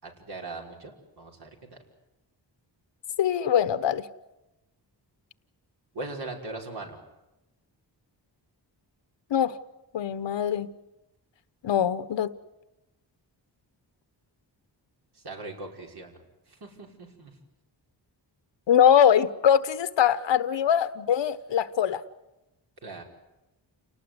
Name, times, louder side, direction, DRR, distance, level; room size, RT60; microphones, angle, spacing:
voice 1, 0.0-1.8 5.9-7.0 15.1-16.2 16.5-17.4 22.8-23.0, right 2 dB, 60° right, 1 dB, 5.5 m, -40 dB
voice 2, 3.2-4.0 9.3-9.6 9.9-10.7 11.6-12.3 18.7-22.0, left 9 dB, 85° left, 13 dB, 1.2 m, -22 dB
29.0 x 18.5 x 9.7 m, 0.98 s
wide cardioid pair, 135°, 43 cm